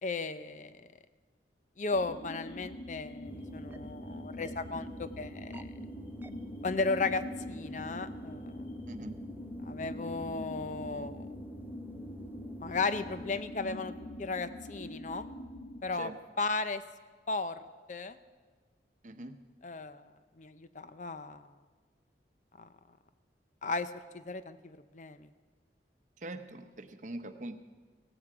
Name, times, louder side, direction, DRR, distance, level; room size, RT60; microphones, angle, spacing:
voice 1, 0.0-0.9 1.8-5.7 6.6-8.7 9.6-11.3 12.6-13.9 14.2-15.3 15.8-16.1 16.4-16.8 17.3-17.6 17.9-18.2 19.6-20.1 20.4-21.5 22.6-22.7 23.6-25.3, left 3 dB, 45° left, 12 dB, 0.6 m, -35 dB
sound 1, 1.9-15.8, left 1 dB, 85° left, 1.7 m, -44 dB
sound 2, 3.3-13.4, right 1 dB, 10° right, 0.5 m, -49 dB
voice 2, 19.0-19.4 26.2-27.6, right 1 dB, 45° right, 9 dB, 0.8 m, -42 dB
16.5 x 16.0 x 4.9 m, 1.4 s
head